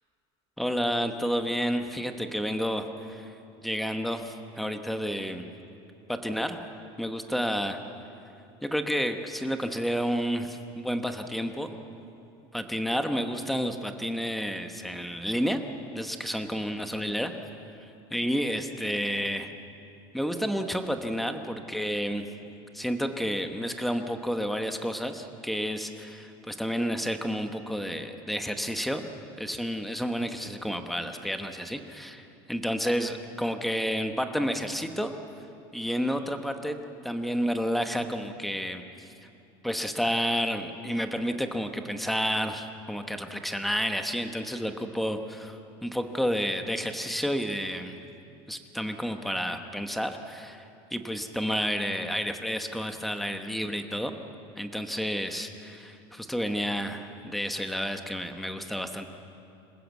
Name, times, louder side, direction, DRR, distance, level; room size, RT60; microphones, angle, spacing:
voice 1, 0.6-3.2 3.6-5.5 6.1-6.6 7.0-7.8 8.6-11.7 12.5-15.6 15.9-17.3 18.1-19.5 20.1-22.3 22.7-29.1 29.4-35.1 35.7-36.8 37.0-39.1 39.6-45.5 45.8-48.0 48.5-50.6 50.9-54.2 54.6-59.1, equal, ahead, 6 dB, 1.0 m, -30 dB
27.0 x 16.0 x 8.2 m, 2.7 s
cardioid pair, 170°, 13 cm